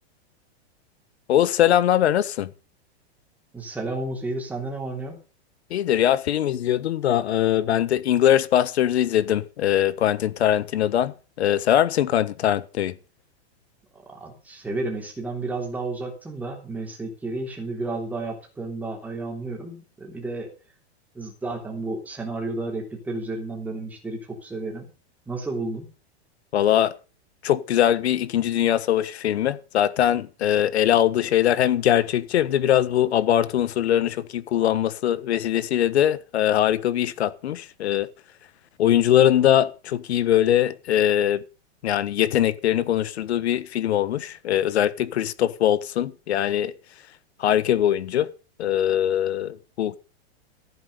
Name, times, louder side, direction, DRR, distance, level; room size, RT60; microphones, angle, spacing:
voice 1, 1.3-2.5 5.7-12.9 26.5-26.9 27.4-38.1 38.8-41.4 41.8-46.7 47.4-48.3 48.6-50.0, left 11 dB, 75° left, 1.3 m, -21 dB
voice 2, 3.5-5.1 14.1-20.5 21.1-24.9 25.3-25.9, right 2 dB, 5° right, 3.3 m, -32 dB
15.5 x 9.3 x 6.7 m
supercardioid pair, 180°, 32 cm